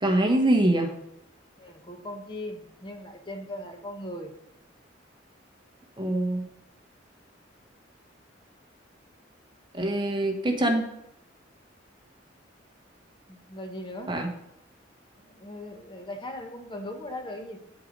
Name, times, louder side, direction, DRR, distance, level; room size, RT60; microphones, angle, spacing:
voice 1, 0.0-0.9 6.0-6.5 9.7-10.9 14.1-14.3, right 1 dB, 25° right, 4 dB, 1.1 m, -24 dB
voice 2, 1.6-4.3 13.3-14.2 15.3-17.6, left 1 dB, 25° left, 3 dB, 1.2 m, -39 dB
8.6 x 6.6 x 5.3 m, 0.79 s
head